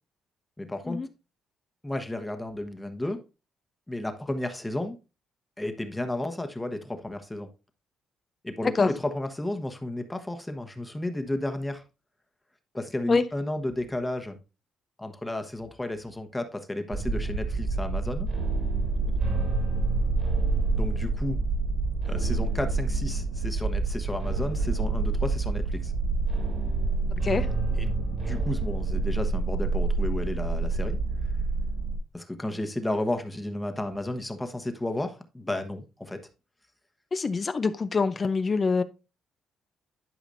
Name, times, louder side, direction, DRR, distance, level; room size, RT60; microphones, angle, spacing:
voice 1, 0.6-1.0 1.8-3.2 3.9-5.0 5.6-7.5 8.4-11.8 12.7-14.4 15.0-18.3 20.7-21.4 22.0-25.9 27.8-31.0 32.1-36.2, left 1 dB, 10° left, 1.1 m, -33 dB
sound 1, 16.9-32.0, right 3 dB, 70° right, 3.8 m, -27 dB
voice 2, 37.1-38.8, left 4 dB, 35° left, 0.5 m, -25 dB
11.5 x 5.0 x 2.6 m
cardioid pair, 90°, 0 cm